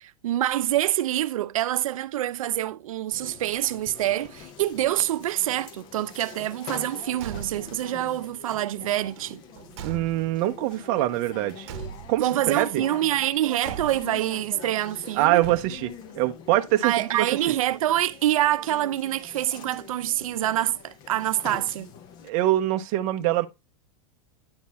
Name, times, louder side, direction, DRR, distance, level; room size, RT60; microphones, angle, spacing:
voice 1, 0.0-9.4 12.2-15.4 16.8-21.9, right 13 dB, 80° right, 0.5 m, -26 dB
sound 1, 3.1-22.3, left 7 dB, 25° left, 0.6 m, -44 dB
Car / Truck / Slam, 7.1-7.9 9.1-10.6 11.6-12.4 13.6-14.3 15.4-16.1, right 8 dB, 55° right, 1.0 m, -40 dB
voice 2, 9.8-11.7 12.1-12.8 15.2-17.2 22.2-23.5, right 15 dB, 35° right, 0.6 m, -24 dB
9.6 x 4.0 x 4.1 m
supercardioid pair, 170°, 17 cm